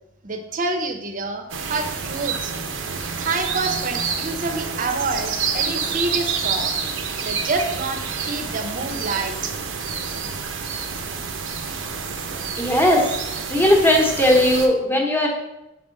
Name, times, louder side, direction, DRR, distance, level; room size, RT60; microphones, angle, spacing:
voice 1, 0.2-6.7 7.2-9.5, right 3 dB, 45° right, 5 dB, 0.7 m, -28 dB
sound 1, 1.5-14.7, right 5 dB, 85° right, 0.7 m, -28 dB
voice 2, 12.6-13.1 13.5-15.3, left 1 dB, 10° left, 0 dB, 1.0 m, -17 dB
6.1 x 3.6 x 5.1 m, 0.90 s
head